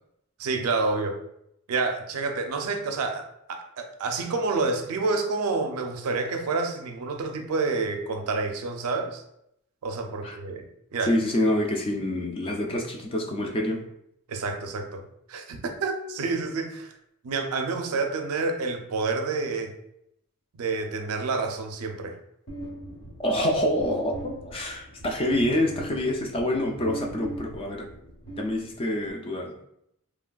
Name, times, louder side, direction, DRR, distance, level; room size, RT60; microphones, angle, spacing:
voice 1, 0.4-1.2 1.7-9.2 9.8-10.7 10.9-11.1 14.3-15.0 15.3-16.9 17.2-19.7 20.6-22.2, right 3 dB, 75° right, 5 dB, 0.4 m, -28 dB
voice 2, 11.0-13.8 23.2-27.9 28.3-29.5, left 1 dB, 25° left, 1 dB, 0.3 m, -27 dB
sound 1, 22.5-29.1, right 1 dB, 45° left, 0.9 m, -40 dB
3.2 x 2.4 x 2.2 m, 0.77 s
head